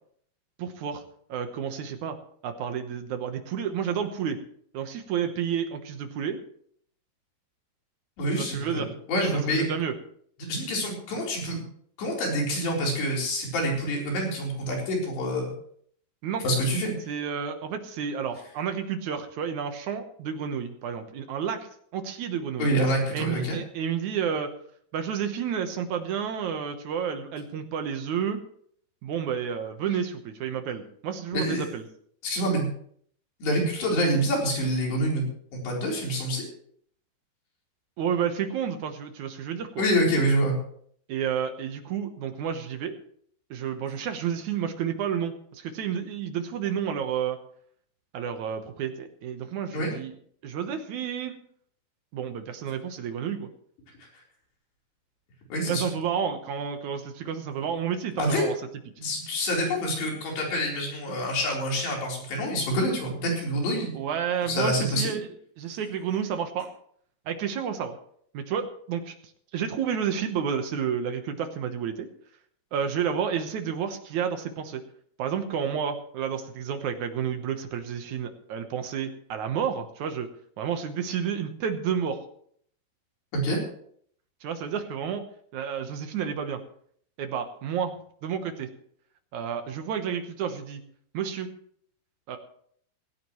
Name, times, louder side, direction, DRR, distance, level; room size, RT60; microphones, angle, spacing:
voice 1, 0.6-1.0 1.3-2.2 2.4-4.4 4.7-6.4 8.4-8.9 9.5-9.9 16.2-16.4 17.1-22.7 23.1-24.5 24.9-28.4 29.0-31.8 38.0-39.8 41.1-43.0 43.5-47.4 48.1-50.1 50.4-51.4 52.1-53.5 55.7-58.5 63.9-65.3 65.6-66.7 67.3-68.0 68.3-69.2 69.5-72.1 72.7-74.8 75.2-80.3 80.6-82.2 84.4-85.2 85.5-86.6 87.2-88.7 89.3-90.8 91.1-91.5 92.3-92.4, right 7 dB, 65° right, 6 dB, 2.0 m, -30 dB
voice 2, 8.2-9.7 10.5-11.6 12.0-15.5 16.4-17.1 22.6-23.6 31.3-31.7 32.2-32.7 33.4-35.3 35.5-36.5 39.8-40.5 49.7-49.9 55.5-55.9 58.2-58.4 59.0-63.9 64.4-65.2 83.3-83.6, equal, 80° left, -2 dB, 6.1 m, -26 dB
17.0 x 17.0 x 3.1 m, 0.62 s
omnidirectional pair, 4.7 m